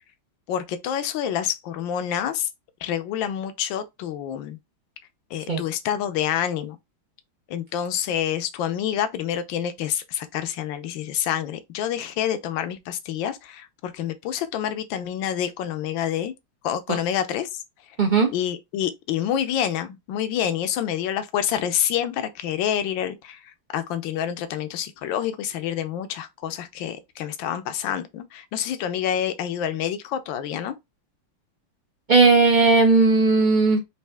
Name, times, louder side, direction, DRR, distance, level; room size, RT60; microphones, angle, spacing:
voice 1, 0.5-2.5 2.8-4.6 5.3-6.8 7.5-16.3 16.6-17.6 18.3-30.7, left 10 dB, 70° left, 1.3 m, -27 dB
voice 2, 18.0-18.3 32.1-33.8, right 3 dB, 50° right, 0.5 m, -17 dB
4.3 x 2.7 x 3.4 m
omnidirectional pair, 2.4 m